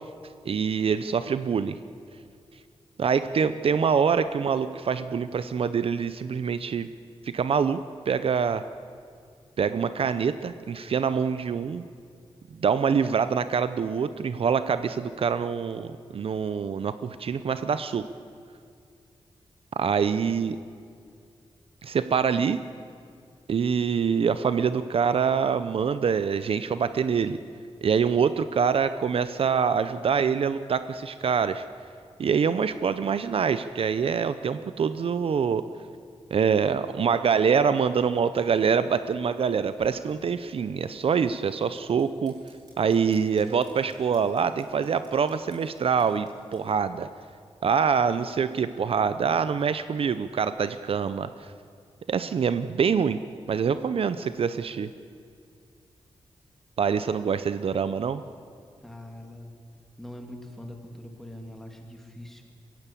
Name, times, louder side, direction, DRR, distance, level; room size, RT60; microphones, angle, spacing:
voice 1, 0.4-1.8 3.0-6.9 7.2-7.8 8.1-8.6 9.6-11.8 12.6-18.1 19.7-20.6 21.8-22.6 23.5-27.4 27.8-31.6 32.2-35.7 36.3-42.3 42.8-47.1 47.6-51.5 52.1-53.2 53.5-54.9 56.8-58.2, right 6 dB, 65° right, 12 dB, 0.6 m, -25 dB
sound 1, 40.0-46.6, right 1 dB, 40° right, 7.7 m, -57 dB
voice 2, 58.8-59.5 60.0-62.4, left 1 dB, 5° left, 3 dB, 2.6 m, -42 dB
23.0 x 16.0 x 8.4 m, 2.3 s
wide cardioid pair, 145°, 10 cm